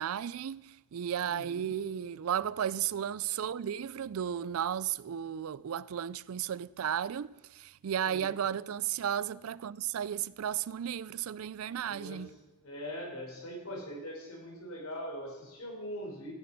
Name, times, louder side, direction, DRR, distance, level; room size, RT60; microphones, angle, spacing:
voice 1, 0.0-12.3, right 9 dB, 70° right, 0.4 m, -34 dB
voice 2, 1.3-1.7 8.0-8.3 11.9-12.3 12.6-16.3, equal, 70° left, 4.5 m, -42 dB
15.5 x 9.5 x 5.5 m
head